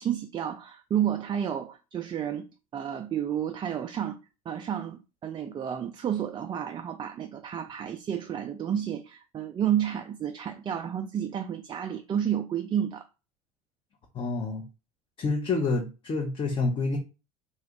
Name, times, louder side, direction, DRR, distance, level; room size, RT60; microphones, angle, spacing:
voice 1, 0.0-2.5 2.7-4.2 4.5-13.0, right 9 dB, 25° right, 0.4 m, -31 dB
voice 2, 14.1-14.6 15.2-17.0, left 3 dB, 30° left, 0.8 m, -28 dB
2.9 x 2.4 x 3.5 m
hypercardioid pair, 85°, 18 cm